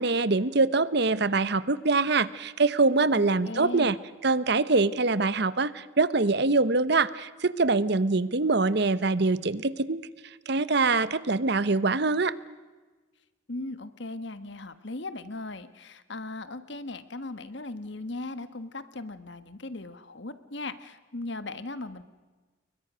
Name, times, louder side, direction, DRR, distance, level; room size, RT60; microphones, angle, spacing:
voice 1, 0.0-4.0 4.2-10.0 10.5-12.3, right 3 dB, 55° right, 17 dB, 0.9 m, -24 dB
voice 2, 3.1-4.0 13.5-22.0, left 2 dB, 60° left, 13 dB, 1.5 m, -38 dB
30.0 x 22.5 x 6.3 m, 1.3 s
head